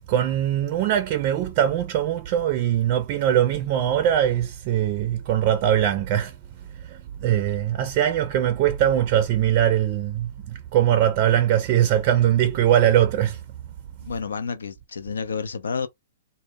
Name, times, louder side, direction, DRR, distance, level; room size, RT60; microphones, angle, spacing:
voice 1, 0.1-6.4 6.8-13.4, right 11 dB, 40° right, 0.4 m, -21 dB
voice 2, 14.0-15.9, left 5 dB, 90° left, 0.4 m, -30 dB
2.1 x 2.1 x 3.5 m
hypercardioid pair, 135°, 0 cm